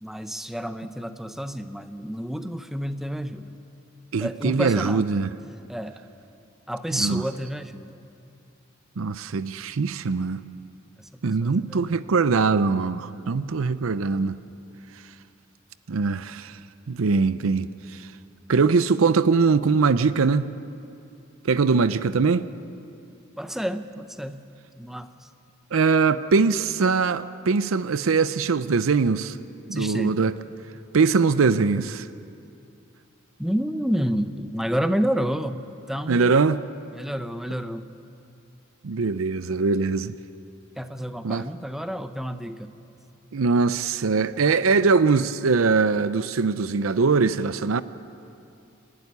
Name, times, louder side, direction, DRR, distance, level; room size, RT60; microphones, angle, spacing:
voice 1, 0.0-3.6 4.2-5.1 5.7-6.0 6.7-8.0 11.0-11.8 23.4-24.4 24.7-25.1 29.1-30.2 31.3-31.9 33.4-36.3 36.9-37.9 40.8-42.7, equal, ahead, 0.7 m, -30 dB
voice 2, 4.1-5.3 6.9-7.2 9.0-10.4 11.2-14.3 15.9-16.6 16.9-18.0 18.5-20.5 21.4-22.5 25.7-29.4 29.7-30.3 30.9-32.1 36.1-36.6 38.8-40.1 41.2-41.4 43.3-47.8, right 4 dB, 85° right, 0.6 m, -22 dB
27.0 x 12.0 x 9.6 m
head